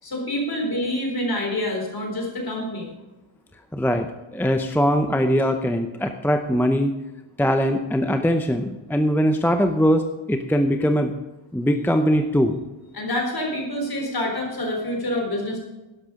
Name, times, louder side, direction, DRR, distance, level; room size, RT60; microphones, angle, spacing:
voice 1, 0.0-2.9 12.9-15.6, left 1 dB, 45° left, 0 dB, 4.2 m, -27 dB
voice 2, 3.7-6.9 7.4-11.1 11.5-12.6, equal, 5° left, 6 dB, 0.7 m, -21 dB
12.5 x 11.0 x 5.0 m, 1.1 s
wide cardioid pair, 160°, 49 cm